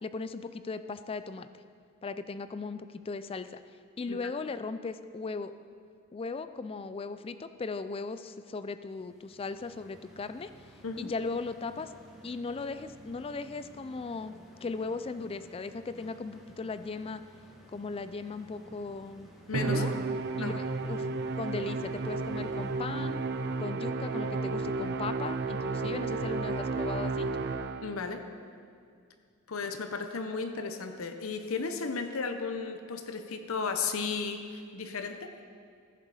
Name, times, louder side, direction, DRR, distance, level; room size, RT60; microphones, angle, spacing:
voice 1, 0.0-1.5 2.0-3.6 4.0-5.5 6.1-10.5 11.0-11.9 12.2-14.3 14.6-17.2 17.7-19.3 19.6-19.9 20.4-21.1 21.4-23.2 23.6-27.3, left 4 dB, 25° left, 12 dB, 0.3 m, -37 dB
sound 1, 9.0-23.5, equal, ahead, 1.3 m, -54 dB
voice 2, 19.5-19.8 20.4-20.6 27.8-28.2 29.5-35.3, left 4 dB, 75° left, 7 dB, 0.7 m, -34 dB
Musical instrument, 19.5-28.1, right 3 dB, 50° right, 0.4 m, -32 dB
14.5 x 6.8 x 4.8 m, 2.3 s
head